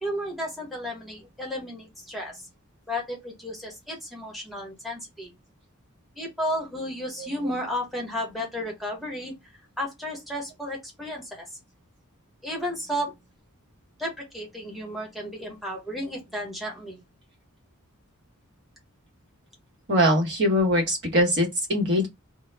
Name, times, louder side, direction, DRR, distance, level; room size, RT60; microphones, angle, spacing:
voice 1, 0.0-2.5 2.9-5.3 6.2-9.3 9.8-11.6 12.4-13.2 14.0-17.0, equal, ahead, 0.9 m, -33 dB
voice 2, 19.9-22.1, equal, 55° right, 1.1 m, -22 dB
2.2 x 2.0 x 3.2 m
head